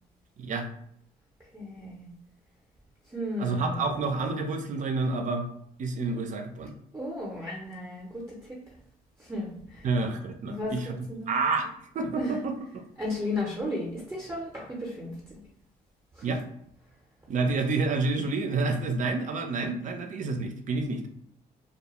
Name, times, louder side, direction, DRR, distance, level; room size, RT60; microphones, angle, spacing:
voice 1, 0.4-0.7 3.4-5.5 5.8-6.7 9.8-12.8 16.2-16.4 17.3-21.0, right 3 dB, 55° right, 5 dB, 0.5 m, -29 dB
voice 2, 1.5-2.1 3.1-4.0 6.9-8.6 9.2-9.9 10.5-11.4 12.2-12.4 13.0-15.4 16.1-16.4, left 1 dB, 15° right, -4 dB, 0.7 m, -35 dB
2.3 x 2.2 x 2.9 m, 0.71 s
cardioid pair, 80°, 16 cm